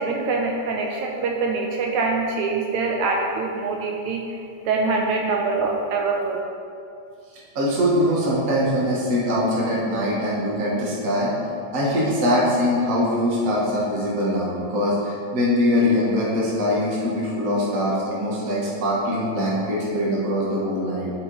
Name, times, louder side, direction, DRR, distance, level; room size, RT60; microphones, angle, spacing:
voice 1, 0.0-4.4 4.7-6.4, right 3 dB, 80° right, 0 dB, 1.8 m, -24 dB
voice 2, 7.5-11.3 11.7-21.1, left 1 dB, 60° right, -6 dB, 0.8 m, -22 dB
12.0 x 4.6 x 4.0 m, 2.4 s
omnidirectional pair, 3.7 m